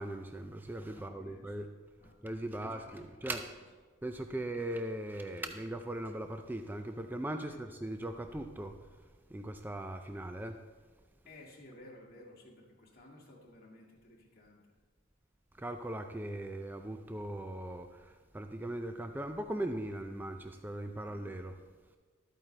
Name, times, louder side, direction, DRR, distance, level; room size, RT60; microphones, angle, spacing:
voice 1, 0.0-1.7 2.2-3.5 4.0-8.8 9.3-10.6 15.6-21.5, right 1 dB, 10° right, 6 dB, 0.3 m, -39 dB
voice 2, 0.9-1.6 2.0-2.2 2.4-3.4 7.4-8.1 11.3-14.6, left 1 dB, 45° left, -3 dB, 2.0 m, -56 dB
12.5 x 8.7 x 3.3 m, 1.4 s
head